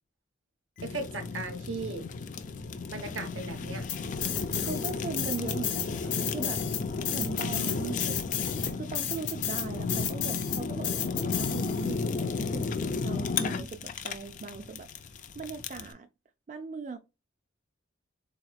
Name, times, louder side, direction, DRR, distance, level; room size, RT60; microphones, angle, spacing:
Fire, 0.8-15.9, left 4 dB, 40° left, 0.3 m, -34 dB
voice 1, 0.8-2.1 2.9-3.9 4.5-4.8 7.2-7.9, right 3 dB, 75° right, 0.9 m, -37 dB
sound 1, 3.9-4.9 5.2-12.0, left 10 dB, 65° left, 0.8 m, -32 dB
voice 2, 4.6-6.6 7.1-8.1 8.8-16.1 16.5-17.0, right 4 dB, 35° right, 0.3 m, -40 dB
4.0 x 2.8 x 2.2 m
head